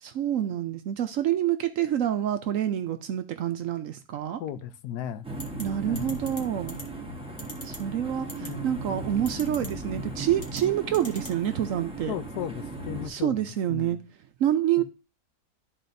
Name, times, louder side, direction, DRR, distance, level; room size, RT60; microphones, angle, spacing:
voice 1, 0.0-4.4 5.6-6.8 7.6-12.1 13.1-14.0 14.4-14.8, right 11 dB, 65° right, 0.9 m, -27 dB
voice 2, 4.4-5.3 5.8-6.2 8.4-8.7 12.1-14.0 14.8-14.9, left 10 dB, 80° left, 1.2 m, -36 dB
sound 1, 5.2-13.1, right 2 dB, 5° right, 1.0 m, -37 dB
sound 2, 5.4-5.6 6.0-6.4 6.7-6.8 7.4-7.8 8.3-8.5 9.3-9.7 10.4-10.6 10.9-11.3, left 2 dB, 35° left, 1.4 m, -39 dB
12.0 x 4.1 x 2.6 m
omnidirectional pair, 1.7 m